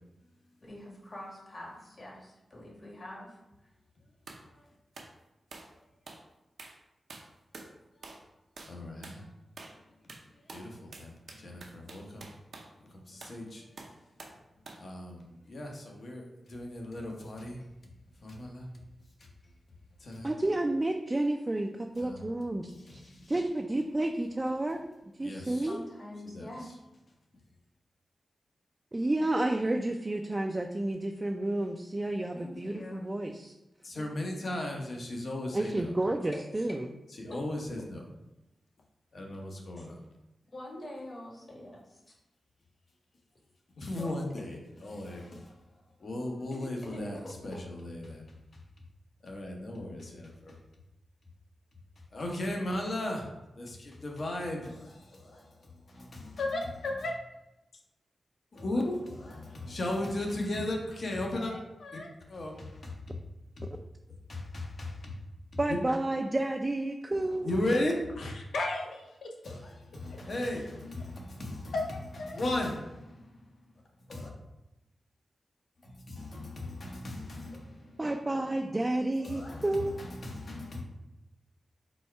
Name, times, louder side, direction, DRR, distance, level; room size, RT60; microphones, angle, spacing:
voice 1, 0.6-3.4 25.7-26.6 32.3-33.1 33.9-34.1 36.3-36.7 37.3-37.4 39.7-39.9 40.5-42.1 44.0-44.2 46.8-47.2, left 1 dB, 45° left, 1.4 m, -44 dB
sound 1, 4.3-4.5 4.9-5.1 5.5-5.7 6.1-6.3 6.6-6.8 7.1-7.7 8.0-8.3 8.6-8.8 9.0-9.2 9.6-9.8 10.1-12.7 13.2-13.4 13.8-14.4 14.7-14.9, right 3 dB, 70° right, 0.6 m, -48 dB
voice 2, 8.6-9.2 10.5-12.3 13.1-13.6 14.8-15.2 15.5-17.6 18.2-18.7 20.0-20.3 22.0-22.2 22.8-23.3 25.2-25.7 26.3-26.5 33.8-35.9 37.2-38.0 39.1-40.0 43.8-45.5 46.0-48.3 49.2-50.5 52.1-53.3 53.6-56.4 58.5-61.5 61.9-62.0 62.3-63.0 64.3-65.2 65.7-65.8 67.4-67.9 69.4-71.7 72.3-73.3 74.1-74.3 75.8-78.0 79.2-80.8, left 1 dB, 60° left, 1.0 m, -36 dB
voice 3, 20.2-23.0 23.3-24.8 25.2-25.8 28.9-33.5 35.5-36.9 65.6-67.5 78.0-79.9, right 1 dB, 30° right, 0.4 m, -30 dB
voice 4, 56.4-57.1 61.3-62.1 68.2-68.9 71.7-72.4, left 2 dB, 80° left, 0.6 m, -34 dB
4.2 x 2.3 x 4.5 m
cardioid pair, 50°, 0 cm